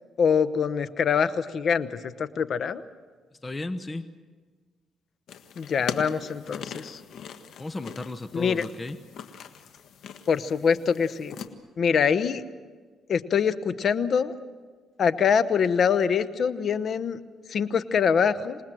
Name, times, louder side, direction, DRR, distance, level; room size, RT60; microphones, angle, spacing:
voice 1, 0.2-2.8 5.6-7.0 8.3-8.6 10.3-11.3 11.8-12.4 13.1-14.3 15.0-17.2 17.5-18.6, left 6 dB, 55° left, 13 dB, 1.0 m, -24 dB
voice 2, 3.4-4.0 7.6-9.0, left 2 dB, 25° left, 10 dB, 1.0 m, -34 dB
sound 1, 5.3-11.5, left 7 dB, 70° left, 1.5 m, -41 dB
26.5 x 19.5 x 7.7 m, 1.5 s
cardioid pair, 90°, 0 cm